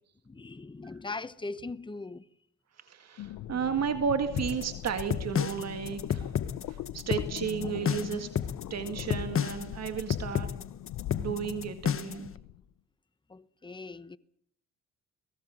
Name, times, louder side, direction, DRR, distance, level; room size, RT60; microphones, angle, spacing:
voice 1, 0.2-2.3 13.3-14.2, left 3 dB, 15° left, 1.1 m, -40 dB
voice 2, 2.8-6.3 6.7-8.3 8.7-10.5 11.1-12.3, right 7 dB, 60° right, 1.9 m, -33 dB
sound 1, 3.2-12.6, left 13 dB, 85° left, 1.0 m, -41 dB
sound 2, 4.4-12.3, left 8 dB, 45° left, 1.2 m, -31 dB
29.5 x 18.0 x 6.5 m
cardioid pair, 90°, 30 cm